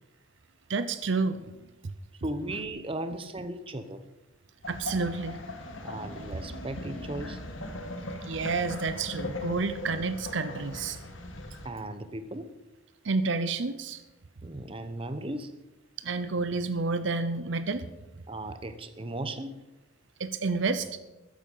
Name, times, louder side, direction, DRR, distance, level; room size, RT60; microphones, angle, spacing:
voice 1, 0.7-1.6 4.7-5.4 8.2-11.0 13.0-14.0 16.0-17.9 20.2-20.9, right 3 dB, 65° right, 12 dB, 0.7 m, -29 dB
voice 2, 2.2-4.0 5.8-7.4 11.6-12.5 14.4-15.6 18.3-19.6, right 1 dB, 25° right, 10 dB, 0.9 m, -36 dB
sound 1, 4.6-11.7, left 2 dB, 80° left, 2.3 m, -39 dB
14.0 x 10.0 x 5.6 m, 1.0 s
head